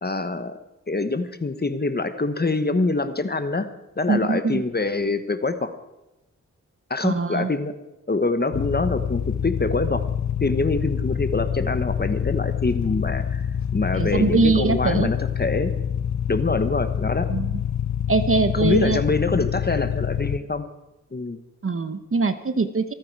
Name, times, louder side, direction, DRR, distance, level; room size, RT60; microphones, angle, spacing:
voice 1, 0.0-0.6 0.9-3.7 4.0-5.7 6.9-7.7 8.1-10.0 10.4-13.5 13.7-15.7 16.3-17.3 18.5-20.7 21.1-21.4, left 3 dB, 30° left, 10 dB, 1.2 m, -25 dB
voice 2, 4.1-4.6 7.0-7.5 13.9-15.1 17.3-17.5 18.1-19.0 21.6-22.8, right 4 dB, 45° right, 10 dB, 1.1 m, -22 dB
sound 1, 8.5-20.4, left 9 dB, 65° left, 0.7 m, -26 dB
26.5 x 9.5 x 4.8 m, 0.93 s
wide cardioid pair, 95°, 31 cm